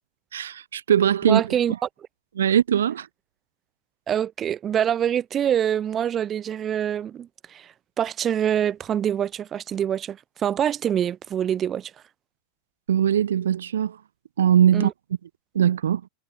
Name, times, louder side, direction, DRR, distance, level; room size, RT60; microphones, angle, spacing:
voice 1, 0.3-1.4 2.4-3.1 12.9-14.0 14.4-14.9 15.5-16.0, right 9 dB, 80° right, 1.4 m, -20 dB
voice 2, 1.3-1.7 4.1-11.9 14.7-14.9, right 9 dB, 30° right, 2.1 m, -25 dB
hypercardioid pair, 95°, 0 cm